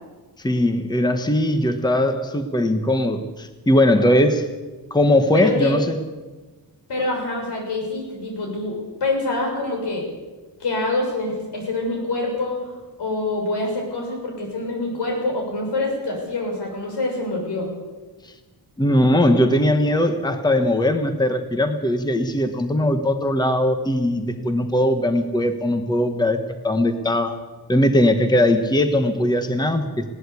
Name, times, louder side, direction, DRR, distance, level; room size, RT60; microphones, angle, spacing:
voice 1, 0.4-4.5 4.9-6.0 18.8-27.4 27.7-30.0, left 1 dB, 10° left, 7 dB, 1.2 m, -20 dB
voice 2, 5.3-5.8 6.9-10.1 10.6-12.7 13.0-17.7, left 2 dB, 80° left, 1 dB, 7.1 m, -25 dB
20.5 x 17.5 x 8.3 m, 1.3 s
wide cardioid pair, 160°, 40 cm